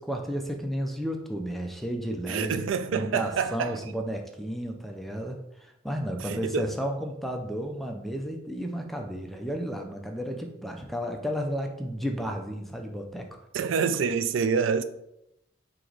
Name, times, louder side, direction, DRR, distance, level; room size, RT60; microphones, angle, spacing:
voice 1, 0.0-2.6 2.9-13.4, equal, ahead, 0.4 m, -33 dB
voice 2, 2.3-3.8 6.2-6.7 13.5-14.8, right 6 dB, 70° right, 0.3 m, -27 dB
4.7 x 2.9 x 3.9 m
head